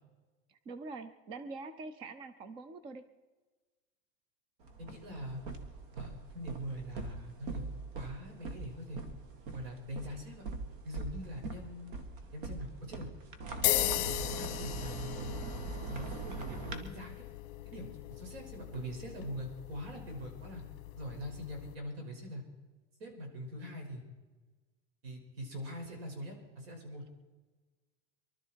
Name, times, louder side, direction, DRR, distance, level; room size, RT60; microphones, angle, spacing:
voice 1, 0.5-3.0, right 3 dB, 15° right, 12 dB, 0.5 m, -44 dB
sound 1, 4.6-16.8, right 3 dB, 60° right, 1.9 m, -42 dB
voice 2, 4.8-5.4 5.9-7.7 7.9-9.0 9.5-10.4 10.8-11.9 12.3-13.1 13.6-15.3 15.9-17.3 17.7-20.6 21.0-22.4 23.0-24.0 25.0-27.0, equal, 75° right, 3 dB, 5.8 m, -43 dB
sound 2, 13.6-21.7, left 15 dB, 55° left, 1.1 m, -38 dB
24.0 x 12.5 x 4.6 m, 1.3 s
supercardioid pair, 180°, 30 cm